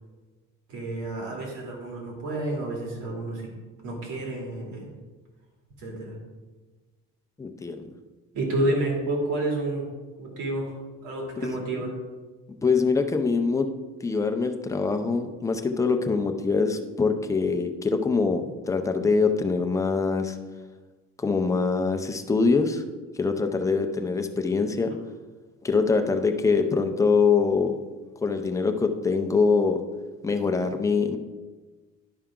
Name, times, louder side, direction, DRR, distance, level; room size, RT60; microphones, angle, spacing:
voice 1, 0.7-3.5 3.8-4.9 5.8-6.2 8.3-9.8 10.2-10.7 11.0-11.9, right 2 dB, 80° right, -1 dB, 2.6 m, -29 dB
voice 2, 7.4-7.8 11.4-11.5 12.6-13.7 14.0-20.4 21.2-22.8 23.2-24.9 25.6-27.8 28.2-29.8 30.2-31.2, left 4 dB, 10° left, 5 dB, 0.4 m, -24 dB
11.0 x 5.7 x 3.7 m, 1.3 s
cardioid pair, 180°, 30 cm